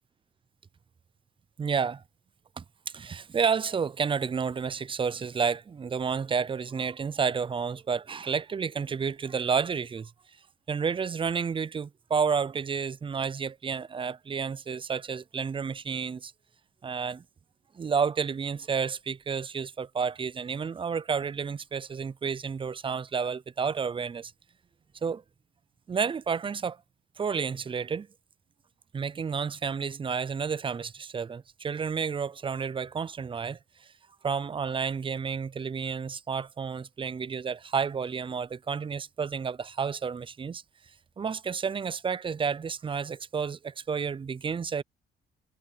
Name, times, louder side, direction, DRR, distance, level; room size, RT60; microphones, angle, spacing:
voice 1, 1.6-2.0 2.6-2.7 2.9-10.1 10.7-16.3 16.8-17.2 17.7-24.3 25.0-25.2 25.9-26.8 27.2-28.1 28.9-33.6 34.2-40.6 41.2-44.8, right 6 dB, 25° right, 0.5 m, -30 dB
cardioid pair, 90°, 20 cm